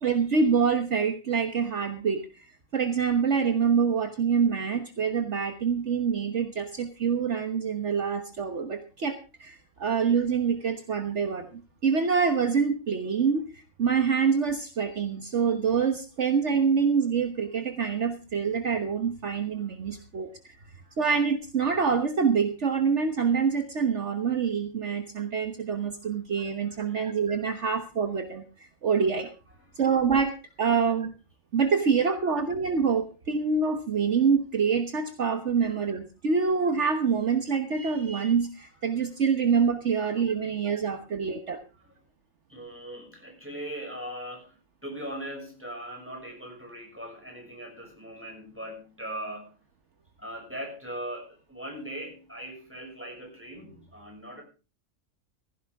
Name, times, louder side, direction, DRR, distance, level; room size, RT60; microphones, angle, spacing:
voice 1, 0.0-20.6 21.0-29.3 29.7-31.1 31.5-41.6, right 6 dB, 60° right, 6 dB, 1.5 m, -26 dB
voice 2, 19.5-20.1 20.6-21.0 25.7-25.8 26.7-27.4 29.6-29.8 30.7-30.8 41.8-41.9 42.5-49.6 50.2-54.4, right 1 dB, 10° right, 1 dB, 6.2 m, -40 dB
16.0 x 15.5 x 3.6 m, 0.33 s
omnidirectional pair, 1.4 m